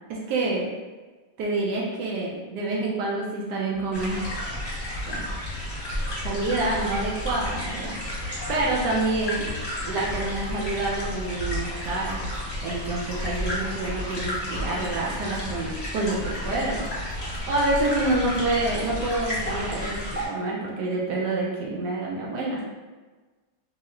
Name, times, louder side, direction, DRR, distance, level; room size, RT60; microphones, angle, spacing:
voice 1, 0.1-0.7 1.4-4.2 5.1-5.2 6.2-8.1 8.5-9.5 9.8-12.2 12.6-16.9 17.5-20.0 20.3-22.6, right 2 dB, 75° right, -4 dB, 1.0 m, -27 dB
sound 1, 3.7-19.7, left 3 dB, 90° left, 1.4 m, -41 dB
sound 2, 3.9-20.2, equal, 30° left, 0.8 m, -32 dB
3.1 x 2.9 x 2.4 m, 1.3 s
omnidirectional pair, 2.1 m